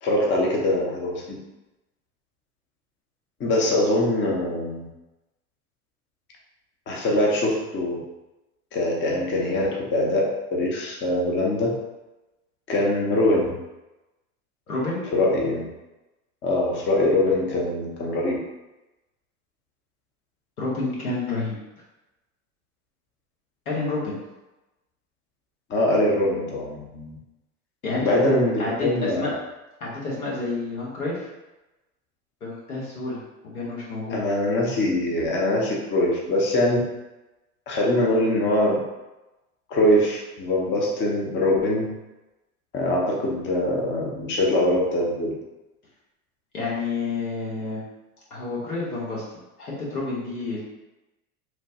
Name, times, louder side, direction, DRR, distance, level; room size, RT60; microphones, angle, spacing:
voice 1, 0.0-1.4 3.4-4.9 6.9-8.0 8.7-11.8 12.7-13.6 15.1-15.7 16.4-18.4 25.7-27.2 28.0-29.3 34.1-36.8 37.7-38.8 39.7-41.9 42.7-45.3, left 1 dB, 25° left, -2 dB, 0.6 m, -23 dB
voice 2, 14.7-15.0 20.6-21.6 23.7-24.2 27.8-28.3 28.6-29.3 29.8-31.3 32.4-33.2 33.5-34.2 46.5-47.8 48.3-49.2 49.6-50.6, left 3 dB, 90° left, -6 dB, 1.1 m, -29 dB
3.1 x 2.1 x 2.8 m, 1.0 s
hypercardioid pair, 85°, 43 cm